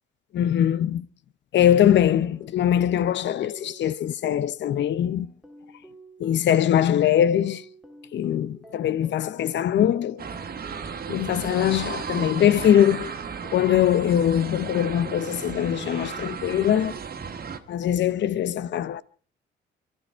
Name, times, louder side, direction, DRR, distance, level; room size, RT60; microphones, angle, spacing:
voice 1, 0.3-1.1 1.5-5.3 6.2-7.6 8.1-10.2 11.1-13.1 13.5-17.0 17.7-19.0, left 10 dB, 65° left, 0.8 m, -22 dB
sound 1, 1.8-12.3 12.6-13.9 14.2-14.8, right 1 dB, ahead, 2.3 m, -49 dB
sound 2, 10.2-17.6, right 6 dB, 50° right, 1.7 m, -35 dB
23.5 x 13.0 x 4.6 m
cardioid pair, 90°, 20 cm